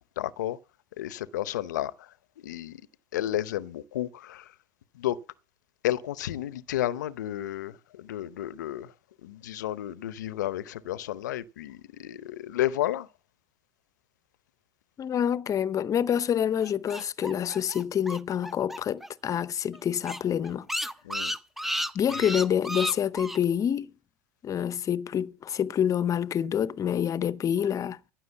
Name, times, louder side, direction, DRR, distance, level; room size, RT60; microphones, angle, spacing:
voice 1, 0.2-0.6 1.0-2.8 3.1-4.5 4.9-5.2 5.8-8.9 9.2-13.1 21.0-21.4 22.1-22.3, left 13 dB, 80° left, 0.7 m, -32 dB
voice 2, 15.0-20.7 21.9-23.9 24.4-28.0, left 9 dB, 35° left, 0.7 m, -27 dB
sound 1, 16.6-19.1 19.3-19.4 19.7-19.8 20.0-23.4, equal, ahead, 0.7 m, -33 dB
14.5 x 6.1 x 7.1 m
hypercardioid pair, 85°, 10 cm